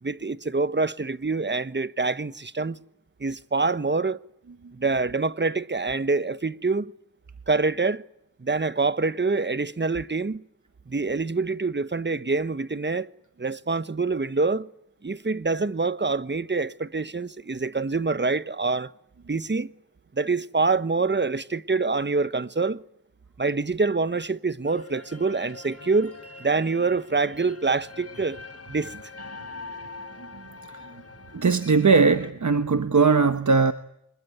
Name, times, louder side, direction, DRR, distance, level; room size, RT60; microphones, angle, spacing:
voice 1, 0.0-2.8 3.2-4.2 4.7-6.9 7.5-8.0 8.4-10.4 10.9-13.1 13.4-14.7 15.0-18.9 19.3-19.7 20.1-22.8 23.4-28.4 28.7-28.9, right 3 dB, 30° right, 1.1 m, -26 dB
sound 1, 24.6-32.3, left 3 dB, 45° left, 3.8 m, -43 dB
voice 2, 31.3-33.7, right 4 dB, 55° right, 1.3 m, -19 dB
26.0 x 21.5 x 9.3 m
cardioid pair, 45°, 34 cm